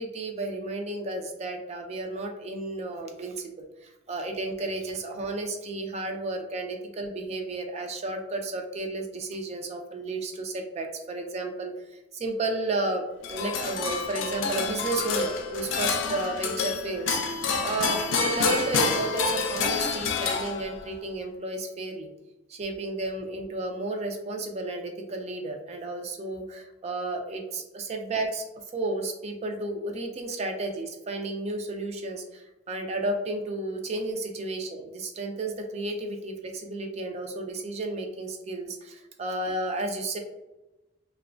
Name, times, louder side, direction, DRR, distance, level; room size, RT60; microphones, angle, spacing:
voice 1, 0.0-11.7 12.1-17.4 17.6-22.1 22.5-28.4 28.7-40.2, right 2 dB, 35° right, 4 dB, 0.3 m, -32 dB
sound 1, 13.2-20.9, left 5 dB, 90° left, 0.4 m, -28 dB
2.9 x 2.1 x 2.5 m, 1.0 s
head